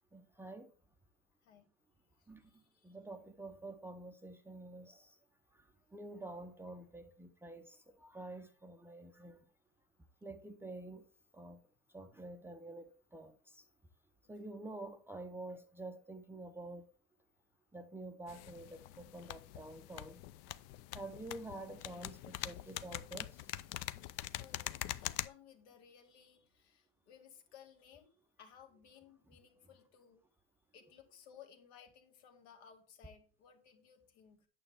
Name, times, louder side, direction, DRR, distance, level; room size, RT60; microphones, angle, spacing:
voice 1, 0.1-0.7 2.3-2.4 2.8-5.2 5.5-9.4 10.2-11.0 11.3-11.6 11.9-13.6 14.3-16.9 17.7-20.2 20.9-23.6, right 2 dB, 5° right, 0.5 m, -48 dB
voice 2, 2.2-3.0 24.4-30.2 30.7-34.5, left 8 dB, 75° left, 2.2 m, -60 dB
sound 1, 18.3-25.3, left 14 dB, 45° left, 0.6 m, -44 dB
9.0 x 6.9 x 3.4 m
supercardioid pair, 125°, 34 cm